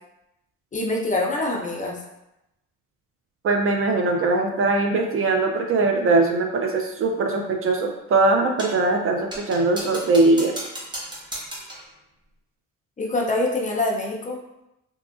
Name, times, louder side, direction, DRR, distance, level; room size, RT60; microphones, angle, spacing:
voice 1, 0.7-2.0 13.0-14.4, left 2 dB, 25° left, -1 dB, 0.6 m, -25 dB
voice 2, 3.4-10.5, right 3 dB, 45° right, 3 dB, 0.4 m, -21 dB
sound 1, 8.6-8.9 9.3-11.9, right 1 dB, 15° right, 0.7 m, -35 dB
2.8 x 2.4 x 2.4 m, 0.88 s
cardioid pair, 90°, 30 cm